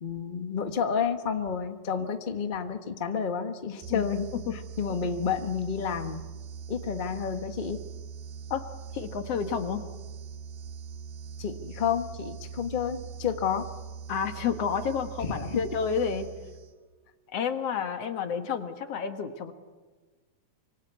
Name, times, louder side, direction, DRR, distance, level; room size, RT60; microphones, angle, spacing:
voice 1, 0.0-4.2 4.5-6.3 6.7-7.8 11.4-13.7 15.2-15.6, left 6 dB, 40° left, 7 dB, 0.6 m, -30 dB
sound 1, 3.8-16.9, right 6 dB, 75° right, 2.3 m, -42 dB
voice 2, 8.9-9.8 14.1-16.3 17.3-19.5, left 6 dB, 60° left, 8 dB, 2.3 m, -30 dB
25.5 x 25.0 x 8.1 m, 1.3 s
omnidirectional pair, 3.3 m